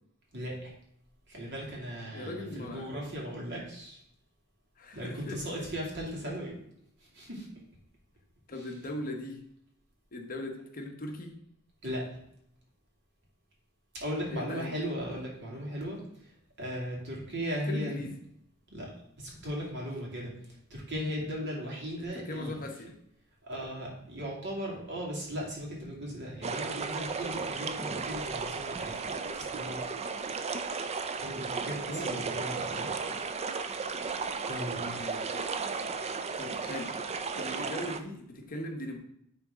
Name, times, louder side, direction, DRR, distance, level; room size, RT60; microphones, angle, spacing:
voice 1, 0.3-0.7 1.3-4.0 4.9-6.6 7.0-7.5 8.6-8.7 11.8-12.2 13.9-16.3 16.6-18.0 18.7-18.9 19.2-22.6 23.4-29.8 31.2-32.9 34.5-35.0, equal, 55° right, -3 dB, 2.5 m, -37 dB
voice 2, 2.1-2.9 4.8-5.6 8.5-9.4 10.1-11.3 14.3-14.7 17.7-18.2 22.0-22.9 30.0-30.4 31.8-32.3 32.7-32.9 35.0-35.3 36.4-37.0 37.3-39.0, left 1 dB, 40° left, 3 dB, 1.0 m, -39 dB
sound 1, 26.4-38.0, right 4 dB, 30° right, 0.4 m, -35 dB
9.6 x 3.9 x 3.6 m, 0.74 s
head